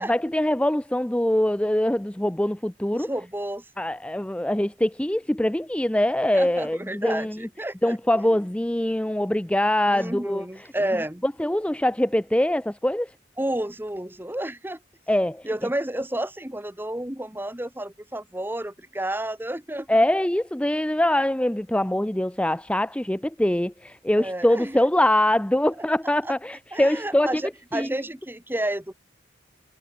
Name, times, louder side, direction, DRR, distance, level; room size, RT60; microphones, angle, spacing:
voice 1, 0.0-3.1 3.8-7.5 7.8-10.4 11.2-13.1 15.1-15.5 19.9-27.4 27.7-28.0, left 1 dB, 5° left, 0.5 m, -23 dB
voice 2, 2.9-3.6 6.3-8.0 8.3-8.4 9.9-11.2 13.4-14.8 15.4-19.9 24.2-24.9 26.2-26.3 26.7-28.9, right 1 dB, 10° right, 1.1 m, -31 dB
head